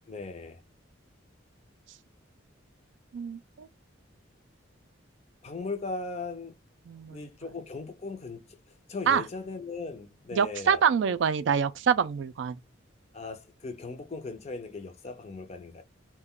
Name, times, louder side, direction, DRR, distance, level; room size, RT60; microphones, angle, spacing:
voice 1, 0.1-0.6 5.4-6.6 7.1-8.5 8.9-10.8 11.1-11.2 13.1-15.8, left 3 dB, 35° left, 0.4 m, -38 dB
voice 2, 3.1-3.7 6.9-7.3 9.1-9.2 10.3-12.6, right 7 dB, 65° right, 0.3 m, -26 dB
2.3 x 2.1 x 3.6 m
head